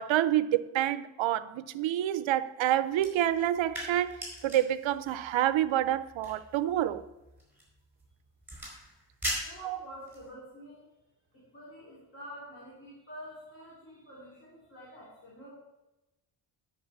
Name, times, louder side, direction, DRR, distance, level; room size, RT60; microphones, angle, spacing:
voice 1, 0.0-7.0 9.6-9.8, right 12 dB, 85° right, 0.7 m, -28 dB
sound 1, 2.9-10.3, equal, 5° right, 4.4 m, -42 dB
voice 2, 9.4-10.9 11.3-15.5, equal, 30° left, 3.3 m, -48 dB
9.6 x 6.2 x 8.4 m
wide cardioid pair, 175°, 45 cm